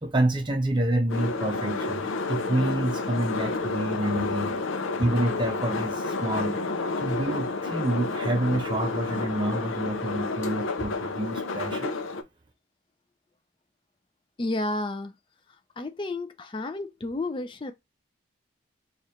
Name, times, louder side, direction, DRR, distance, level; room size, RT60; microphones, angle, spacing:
voice 1, 0.0-4.6 5.0-6.6 7.0-12.0, right 1 dB, 25° right, 0.6 m, -28 dB
sound 1, 1.1-12.2, left 3 dB, 85° left, 0.5 m, -30 dB
voice 2, 14.4-15.1 15.8-17.7, left 2 dB, 25° left, 0.4 m, -31 dB
3.1 x 2.4 x 4.1 m
head